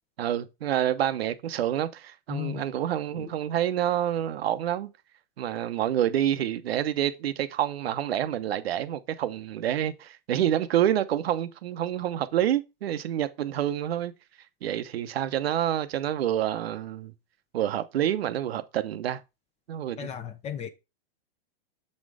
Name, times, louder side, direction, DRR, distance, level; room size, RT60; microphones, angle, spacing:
voice 1, 0.2-4.9 5.4-14.1 14.6-17.1 17.5-19.2 19.7-20.1, right 11 dB, 90° right, 0.9 m, -28 dB
voice 2, 2.3-2.6 3.2-3.3 20.0-20.7, left 10 dB, 20° left, 0.7 m, -35 dB
7.0 x 4.3 x 4.8 m
supercardioid pair, 140°, 29 cm